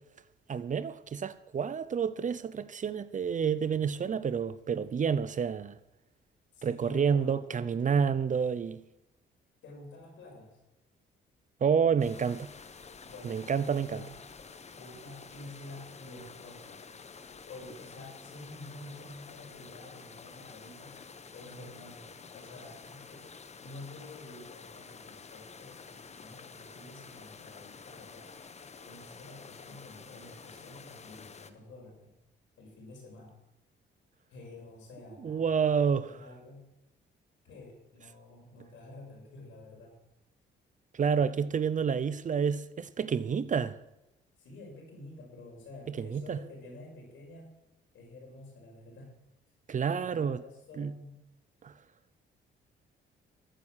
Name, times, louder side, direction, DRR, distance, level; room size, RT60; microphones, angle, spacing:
voice 1, 0.5-5.8 6.6-8.8 11.6-12.5 13.2-14.0 35.2-36.1 40.9-43.8 46.0-46.4 49.7-50.4 50.8-50.9 51.6-51.7, right 6 dB, 40° right, 0.7 m, -29 dB
voice 2, 6.5-7.4 9.6-10.6 13.0-14.1 14.7-16.9 17.4-21.0 21.3-23.3 23.6-25.9 26.2-28.3 28.8-32.1 32.6-33.4 34.3-35.5 36.0-36.7 37.4-40.0 44.4-47.6 47.9-49.1 49.8-51.2, left 2 dB, 75° left, 5.9 m, -49 dB
sound 1, 12.0-31.5, left 5 dB, 35° left, 1.0 m, -49 dB
14.5 x 8.7 x 6.5 m
cardioid pair, 90°, 20 cm